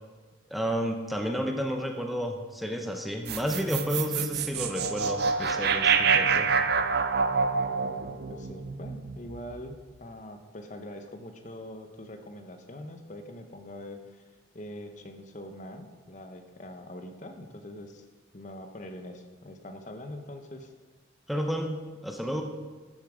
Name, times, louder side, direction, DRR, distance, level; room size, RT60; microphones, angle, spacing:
voice 1, 0.5-6.5 21.3-22.4, equal, ahead, 3 dB, 0.8 m, -31 dB
sound 1, 3.3-9.6, right 5 dB, 60° right, 0.6 m, -27 dB
voice 2, 7.7-14.2 14.5-18.0 18.3-20.7, left 1 dB, 40° left, 6 dB, 0.9 m, -43 dB
13.0 x 7.1 x 5.0 m, 1.3 s
head